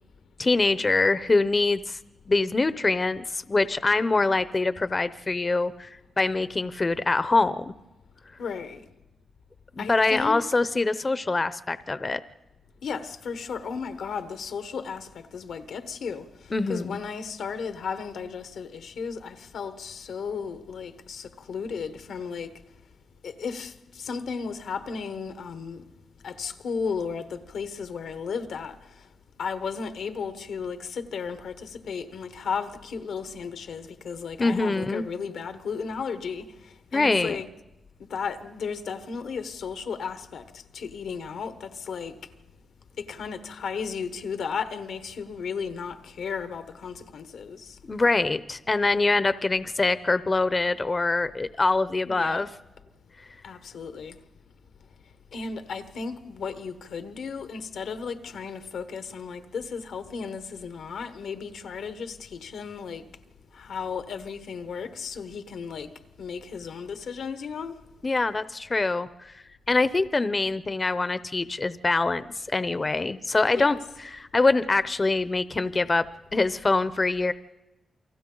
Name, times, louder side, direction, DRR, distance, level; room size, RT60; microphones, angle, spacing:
voice 1, 0.4-2.0 2.3-7.7 9.8-12.2 16.5-17.0 34.4-35.0 36.9-37.4 47.9-52.5 68.0-76.1 76.3-77.3, left 3 dB, 35° left, 0.7 m, -24 dB
voice 2, 8.4-8.8 9.8-10.4 12.8-16.3 16.7-22.6 23.2-25.8 26.2-28.8 29.4-36.5 36.9-37.5 38.0-40.5 40.7-42.2 43.0-47.8 52.0-52.4 53.4-54.2 55.3-63.1 63.5-65.9 66.2-67.8 73.5-73.8, left 5 dB, 85° left, 1.2 m, -34 dB
29.0 x 23.5 x 3.9 m
cardioid pair, 65°, 0 cm